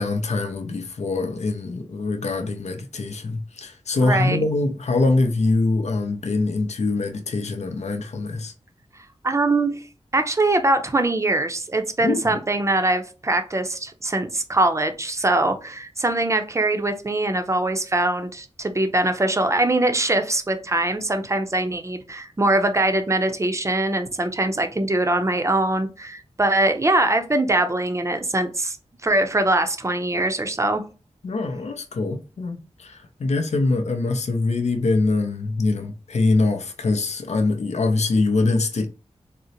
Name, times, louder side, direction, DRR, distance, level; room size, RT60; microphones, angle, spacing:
voice 1, 0.0-8.5 12.0-12.4 31.2-38.9, left 3 dB, 75° left, 0.5 m, -23 dB
voice 2, 4.0-4.4 9.2-9.8 10.1-28.8 29.0-30.8, right 2 dB, 25° right, 0.5 m, -22 dB
3.8 x 2.0 x 2.7 m
wide cardioid pair, 70°, 12 cm